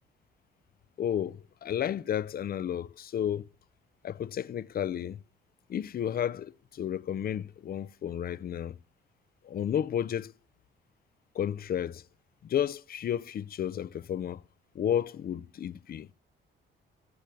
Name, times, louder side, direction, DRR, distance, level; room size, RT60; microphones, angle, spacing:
voice 1, 1.0-3.5 4.0-5.2 5.7-8.8 9.4-10.3 11.3-12.0 12.4-14.4 14.7-16.1, left 9 dB, 50° left, 0.6 m, -32 dB
14.0 x 9.0 x 9.0 m
cardioid pair, 90°, 20 cm